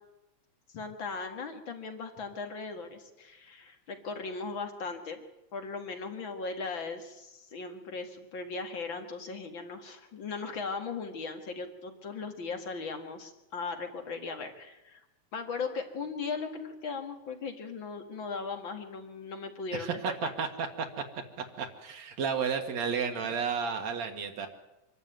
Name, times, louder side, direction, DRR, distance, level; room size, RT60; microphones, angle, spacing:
voice 1, 0.7-5.3 5.5-15.0 15.3-20.3 23.1-23.2, left 4 dB, 45° left, 6 dB, 2.5 m, -38 dB
voice 2, 19.7-20.1 20.4-21.0 21.4-24.5, right 6 dB, 70° right, 4 dB, 2.6 m, -32 dB
25.0 x 12.5 x 9.2 m, 0.96 s
omnidirectional pair, 3.4 m